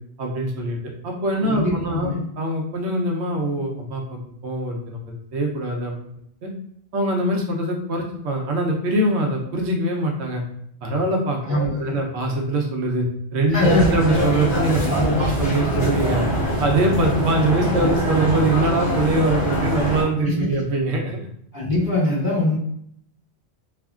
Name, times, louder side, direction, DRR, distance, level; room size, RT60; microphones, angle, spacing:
voice 1, 0.2-4.0 4.4-5.9 6.4-6.5 6.9-10.4 10.8-13.0 13.3-16.2 16.6-21.2, right 2 dB, 90° right, 0 dB, 0.9 m, -23 dB
voice 2, 1.5-2.2 11.4-12.0 13.5-13.9 14.8-15.2 20.2-20.3 21.5-22.6, left 1 dB, 20° left, -11 dB, 1.6 m, -22 dB
sound 1, 13.6-20.0, equal, 45° left, 1.2 m, -23 dB
3.4 x 2.1 x 2.3 m, 0.70 s
omnidirectional pair, 1.1 m